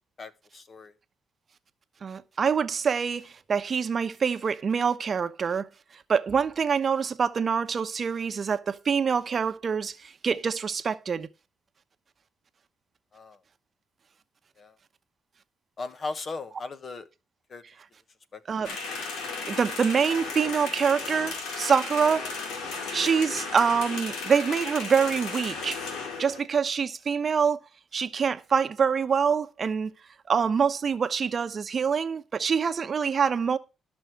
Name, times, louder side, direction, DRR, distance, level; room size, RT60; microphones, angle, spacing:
voice 1, 0.2-0.9 13.1-13.4 14.6-14.8 15.8-17.1 17.5-17.6 18.3-18.4, left 3 dB, 45° left, 1.3 m, -37 dB
voice 2, 2.0-5.7 6.1-11.3 18.5-18.8 19.4-22.3 22.9-25.8 26.2-27.6 27.9-29.9 30.3-33.6, right 6 dB, 45° right, 0.9 m, -25 dB
sound 1, 18.6-26.4, left 4 dB, 90° left, 2.4 m, -35 dB
13.0 x 6.2 x 4.7 m
cardioid pair, 90°, 0 cm